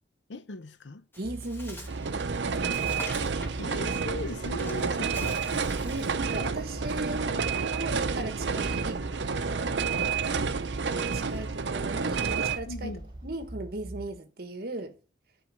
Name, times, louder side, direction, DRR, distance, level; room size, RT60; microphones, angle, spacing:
voice 1, 0.3-1.0 2.7-3.0 3.6-5.4 12.7-13.0, left 2 dB, 75° left, 0.6 m, -39 dB
Bird, 1.1-6.3, left 1 dB, 10° left, 1.4 m, -46 dB
sound 1, 1.2-14.1, right 2 dB, 25° right, 2.3 m, -41 dB
voice 2, 1.2-1.9 2.4-2.8 5.8-7.5 7.7-10.0 11.0-12.9 13.2-14.9, right 2 dB, 55° right, 1.1 m, -37 dB
sound 2, 1.9-12.6, right 5 dB, 75° right, 0.6 m, -30 dB
9.5 x 4.0 x 7.4 m
head